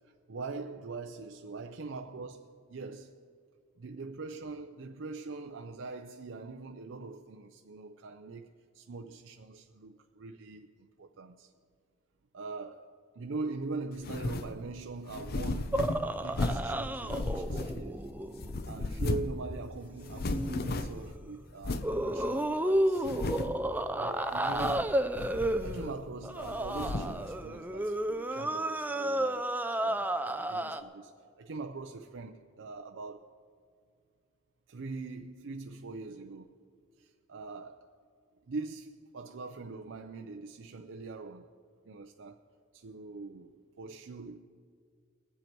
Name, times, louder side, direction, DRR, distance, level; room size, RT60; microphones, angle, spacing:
voice 1, 0.0-3.2 3.8-11.5 12.3-18.0 18.6-23.1 23.9-25.0 25.6-29.5 29.8-31.1 31.4-33.4 34.7-36.6 37.0-37.9 38.5-41.5 41.9-42.4 42.7-44.4, right 3 dB, 70° right, 0.5 m, -42 dB
sound 1, 14.0-14.6 15.1-16.7 17.1-18.1 18.4-19.4 19.7-19.8 20.0-21.1 21.6-22.0 22.4-22.5 23.0-23.6 24.4-24.9 25.2-26.0 26.4-27.2, left 2 dB, 50° left, 0.6 m, -35 dB
sound 2, 15.7-19.2 20.3-20.7 21.8-30.8, right 1 dB, 10° right, 0.4 m, -32 dB
21.5 x 7.9 x 4.5 m
head